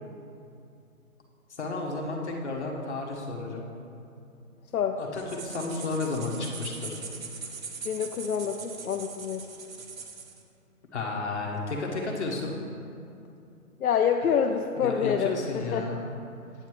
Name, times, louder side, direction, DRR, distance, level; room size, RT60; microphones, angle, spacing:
voice 1, 1.6-3.6 5.0-7.0 10.9-12.5 14.8-16.0, left 3 dB, 50° left, 0 dB, 1.2 m, -32 dB
sound 1, 5.2-10.4, right 5 dB, 65° right, 1.0 m, -41 dB
voice 2, 7.9-9.4 13.8-15.9, left 7 dB, 80° left, 4 dB, 0.6 m, -27 dB
8.7 x 8.0 x 3.1 m, 2.6 s
hypercardioid pair, 175°, 43 cm